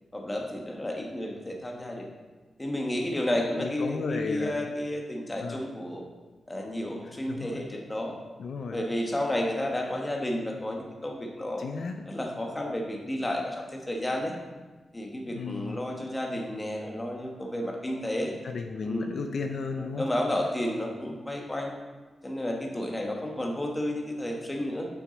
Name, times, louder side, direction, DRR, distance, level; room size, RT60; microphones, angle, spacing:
voice 1, 0.1-2.1 2.6-6.0 6.5-8.1 8.7-11.7 12.1-14.3 14.9-18.3 18.8-19.2 19.8-21.7 22.2-24.9, left 1 dB, 15° left, 0 dB, 1.1 m, -31 dB
voice 2, 3.6-4.7 5.4-5.6 7.3-7.6 8.4-8.8 11.6-12.0 15.3-15.8 18.4-20.1, left 4 dB, 65° left, 4 dB, 0.5 m, -34 dB
6.3 x 6.3 x 4.0 m, 1.3 s
wide cardioid pair, 115°, 0 cm